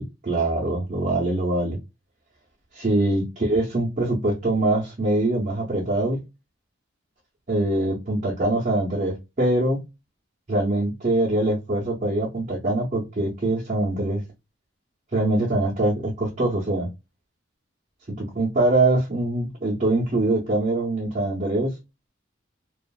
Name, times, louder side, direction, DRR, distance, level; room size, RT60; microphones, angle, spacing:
voice 1, 0.0-1.8 2.7-6.2 7.5-9.8 10.5-14.2 15.1-16.9 18.1-21.8, right 2 dB, 35° right, 0.6 m, -23 dB
2.7 x 2.4 x 2.3 m
head